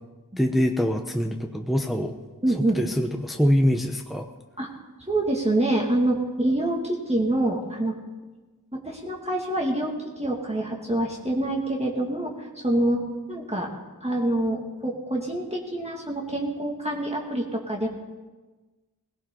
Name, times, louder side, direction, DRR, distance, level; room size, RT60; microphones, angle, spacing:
voice 1, 0.4-2.1 2.7-4.3, equal, ahead, 4 dB, 1.0 m, -24 dB
voice 2, 2.4-2.8 4.6-4.7 5.1-8.0 8.7-13.7 14.0-17.9, right 1 dB, 20° right, -2 dB, 2.2 m, -26 dB
18.5 x 16.5 x 3.9 m, 1.2 s
wide cardioid pair, 50°, 34 cm